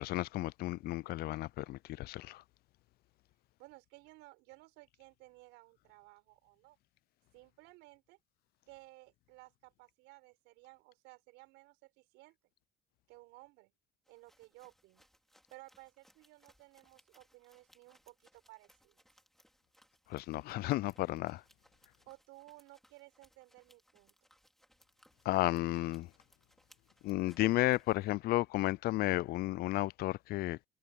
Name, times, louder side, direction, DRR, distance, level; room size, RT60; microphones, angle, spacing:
voice 1, 0.0-2.4 20.1-21.4 25.3-26.1 27.0-30.6, left 17 dB, 60° left, 0.4 m, -33 dB
voice 2, 3.6-6.8 7.3-8.2 8.7-12.4 13.1-13.7 14.1-15.1 15.5-19.0 22.1-24.1, right 23 dB, 85° right, 5.6 m, -57 dB
sound 1, 14.0-28.1, equal, ahead, 4.5 m, -69 dB
cardioid pair, 100°, 18 cm